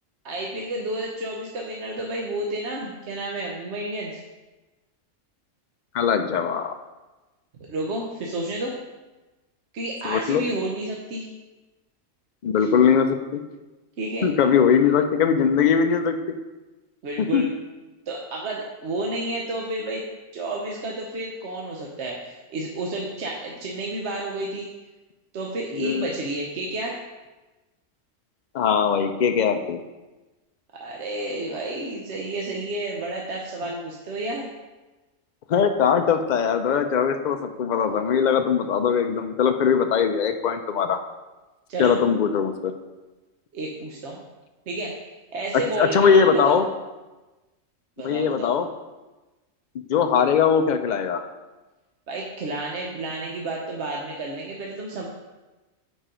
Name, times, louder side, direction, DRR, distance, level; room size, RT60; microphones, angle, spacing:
voice 1, 0.2-4.2 7.7-8.7 9.7-11.3 12.6-12.7 14.0-14.3 17.0-17.5 18.1-20.0 20.3-24.7 25.3-27.0 30.7-34.5 41.7-41.9 43.5-44.2 44.7-44.9 45.3-46.6 48.0-48.5 52.1-55.0, right 2 dB, 60° right, -1 dB, 1.1 m, -31 dB
voice 2, 5.9-6.8 10.0-10.4 12.4-13.4 14.2-16.2 17.2-17.4 25.7-26.1 28.5-29.8 35.5-41.0 41.8-42.7 45.8-46.7 48.0-48.7 49.7-51.2, left 7 dB, 60° left, 7 dB, 0.4 m, -21 dB
9.0 x 4.5 x 5.1 m, 1.1 s
omnidirectional pair, 1.4 m